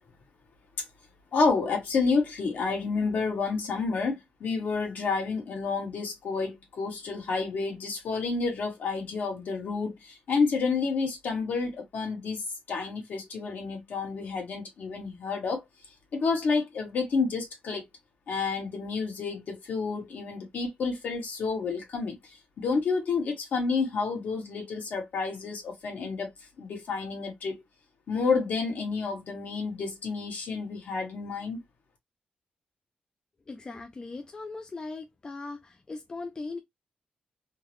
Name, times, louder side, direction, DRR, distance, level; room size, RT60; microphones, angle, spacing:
voice 1, 1.3-15.6 16.1-17.8 18.3-22.2 22.6-26.3 26.6-27.6 28.1-31.6, left 4 dB, 70° left, 1.5 m, -29 dB
voice 2, 33.5-36.6, left 3 dB, 25° left, 0.4 m, -39 dB
3.7 x 2.2 x 3.0 m
wide cardioid pair, 165°, 3 cm